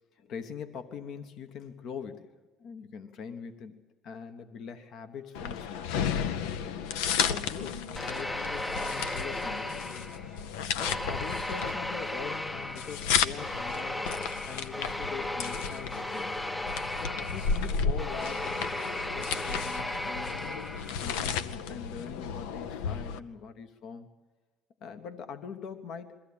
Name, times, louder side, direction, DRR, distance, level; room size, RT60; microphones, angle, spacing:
voice 1, 0.2-2.3 2.6-5.9 6.6-6.8 7.0-10.1 10.8-14.1 14.5-16.4 17.0-18.6 19.1-20.7 21.0-24.1 24.8-26.2, left 6 dB, 65° left, 8 dB, 1.2 m, -43 dB
sound 1, 5.3-23.2, left 7 dB, 90° left, 0.7 m, -33 dB
sound 2, 8.0-10.4 10.8-21.1, left 1 dB, 15° left, 0.6 m, -36 dB
22.0 x 15.0 x 8.6 m, 1.3 s
supercardioid pair, 85°, 0 cm